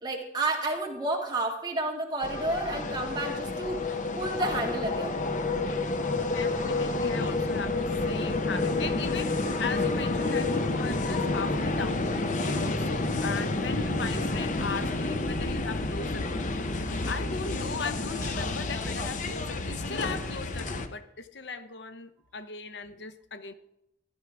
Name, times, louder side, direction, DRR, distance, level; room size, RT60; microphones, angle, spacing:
voice 1, 0.0-3.8 4.2-5.2, right 2 dB, 25° right, -1 dB, 2.0 m, -30 dB
sound 1, 2.2-20.9, left 2 dB, 45° left, 0.7 m, -29 dB
voice 2, 6.3-12.3 12.6-16.4 17.1-23.5, left 4 dB, 80° left, 10 dB, 0.7 m, -38 dB
15.0 x 11.0 x 3.5 m, 0.81 s
head